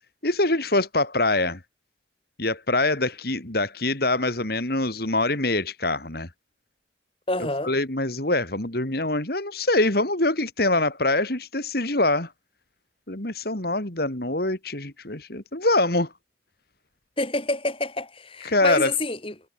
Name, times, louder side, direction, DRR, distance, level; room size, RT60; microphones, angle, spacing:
voice 1, 0.2-1.6 2.4-6.3 7.6-12.3 13.1-16.1 18.4-18.9, left 2 dB, 55° left, 3.1 m, -24 dB
voice 2, 7.3-7.7 17.2-19.3, left 2 dB, 30° left, 5.4 m, -27 dB
head